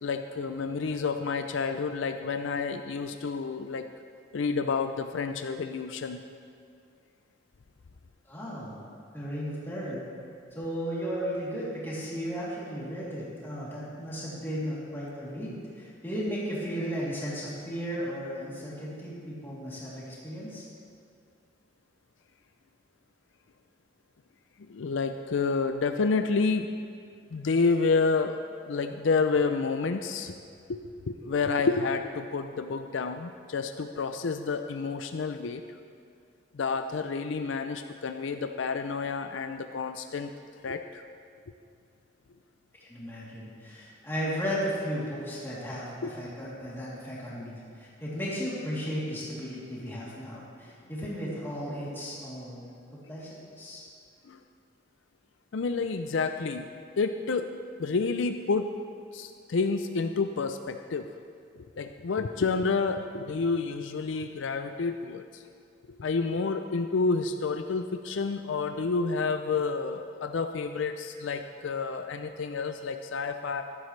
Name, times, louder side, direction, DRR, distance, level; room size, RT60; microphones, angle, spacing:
voice 1, 0.0-3.9 4.3-6.2 24.7-26.7 27.3-28.4 28.7-30.4 30.7-35.6 36.5-40.3 40.6-41.0 46.0-46.1 54.3-54.4 55.5-56.7 57.0-57.5 57.8-58.7 59.1-61.1 61.8-65.4 66.0-73.6, left 4 dB, 75° left, 7 dB, 0.5 m, -29 dB
voice 2, 8.3-8.9 9.1-10.0 10.5-20.6 42.8-52.6 52.9-53.8, equal, 10° left, -8 dB, 3.0 m, -35 dB
14.5 x 12.0 x 3.3 m, 2.3 s
head